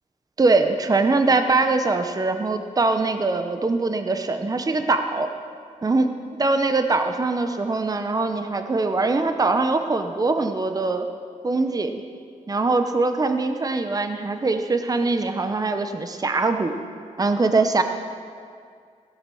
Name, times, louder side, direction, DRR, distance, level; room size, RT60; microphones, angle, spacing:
voice 1, 0.4-5.3 5.8-6.1 6.4-11.1 11.4-12.0 12.5-16.7 17.2-17.8, right 3 dB, 25° right, 7 dB, 0.8 m, -22 dB
16.5 x 7.9 x 6.2 m, 2.2 s
wide cardioid pair, 90°, 14 cm